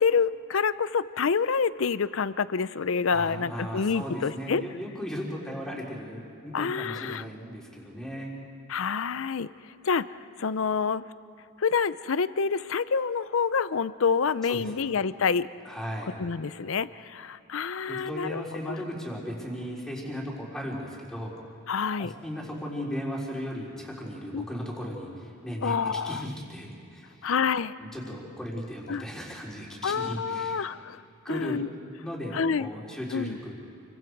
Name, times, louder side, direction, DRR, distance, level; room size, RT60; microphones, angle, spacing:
voice 1, 0.0-4.6 6.5-7.3 8.7-9.5 9.8-11.0 11.6-15.5 16.2-18.8 21.7-22.1 24.3-24.4 25.6-26.2 27.2-27.7 28.9-29.0 29.8-31.0 31.3-31.7 32.3-32.7 33.1-33.4, left 5 dB, 65° left, 16 dB, 0.6 m, -27 dB
voice 2, 3.1-8.3 14.5-14.8 15.7-16.2 17.9-21.3 22.0-27.1 27.8-30.6 31.2-31.6 32.0-33.5, equal, 5° left, -4 dB, 3.9 m, -36 dB
29.0 x 23.5 x 4.7 m, 2.6 s
head